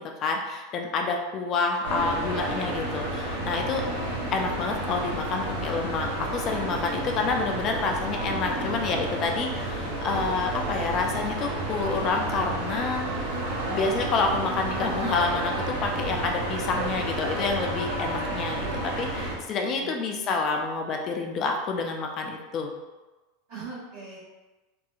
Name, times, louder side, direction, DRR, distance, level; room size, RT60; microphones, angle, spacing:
voice 1, 0.2-3.8 4.3-13.1 13.7-22.7, left 4 dB, 40° left, 2 dB, 0.3 m, -28 dB
sound 1, 1.8-19.4, right 1 dB, 70° right, 0.7 m, -31 dB
voice 2, 19.6-20.4 23.5-24.2, right 4 dB, 55° right, -8 dB, 1.4 m, -42 dB
2.7 x 2.2 x 2.4 m, 1.1 s
figure-of-eight pair, 85°, 0 cm